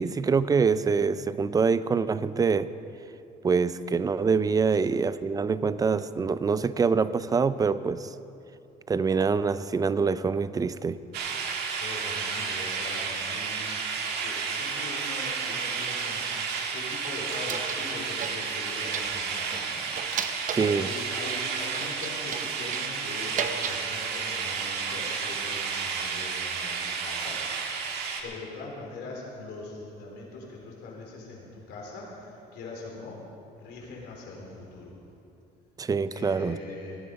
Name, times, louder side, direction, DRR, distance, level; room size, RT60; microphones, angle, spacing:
voice 1, 0.0-2.7 3.4-8.1 8.9-11.0 20.5-20.9 35.8-36.6, right 5 dB, 20° right, 15 dB, 0.4 m, -25 dB
sound 1, 11.1-28.2, right 5 dB, 75° right, 1.7 m, -32 dB
voice 2, 11.8-13.8 14.2-19.9 20.6-27.4 28.2-33.2 33.6-35.0 36.1-37.0, left 3 dB, 80° left, -2 dB, 3.7 m, -41 dB
sound 2, 16.7-17.9 18.2-19.2 19.5-21.1 21.7-23.8 24.2-24.7, right 7 dB, 50° right, 0.9 m, -36 dB
17.0 x 11.0 x 5.3 m, 2.7 s
cardioid pair, 110°, 17 cm